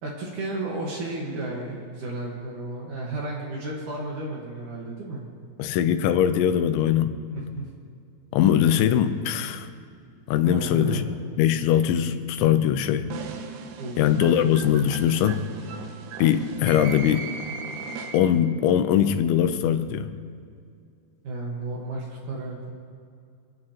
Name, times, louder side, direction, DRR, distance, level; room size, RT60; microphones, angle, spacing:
voice 1, 0.0-5.2 7.3-7.7 10.4-11.0 13.8-14.0 21.2-22.7, right 2 dB, 60° right, -2 dB, 2.3 m, -33 dB
voice 2, 5.6-7.2 8.3-9.7 10.3-11.0 11.4-13.1 14.0-15.4 16.2-17.3 18.1-20.1, left 10 dB, 85° left, 9 dB, 3.0 m, -21 dB
sound 1, 13.1-18.5, right 5 dB, 75° right, 2.2 m, -37 dB
26.5 x 9.5 x 2.9 m, 2.4 s
omnidirectional pair, 5.2 m